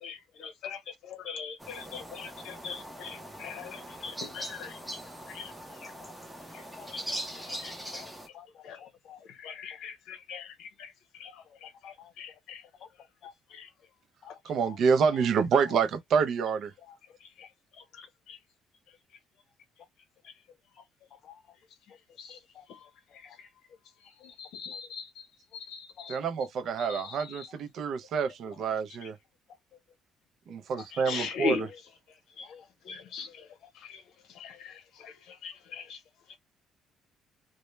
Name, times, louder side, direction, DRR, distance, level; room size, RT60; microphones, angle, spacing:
voice 1, 0.0-5.0 5.3-5.5 5.8-5.9 6.5-8.1 8.6-8.8 9.3-10.9 11.2-12.6 13.5-13.7 17.4-17.5 17.9-18.4 22.2-22.4 22.7-22.8 24.2-25.1 25.5-26.2 26.8-27.5 30.9-31.7 32.4-32.5 32.9-33.5 33.9-34.0 34.4-36.0, left 6 dB, 70° left, 0.8 m, -40 dB
sound 1, 1.6-8.3, equal, ahead, 0.5 m, -41 dB
voice 2, 8.3-9.5 10.3-10.4 12.0-12.1 13.2-13.3 14.2-14.4 14.7-14.8 16.9-17.0 21.2-21.4 22.5-22.6 23.3-23.4 24.7-24.8 26.0-26.1 27.1-27.2 30.7-30.8 32.4-32.6, left 9 dB, 50° left, 0.3 m, -51 dB
voice 3, 14.4-16.7 26.1-29.2 30.5-31.7, right 6 dB, 50° right, 0.4 m, -27 dB
2.1 x 2.1 x 3.0 m
cardioid pair, 155°, 0 cm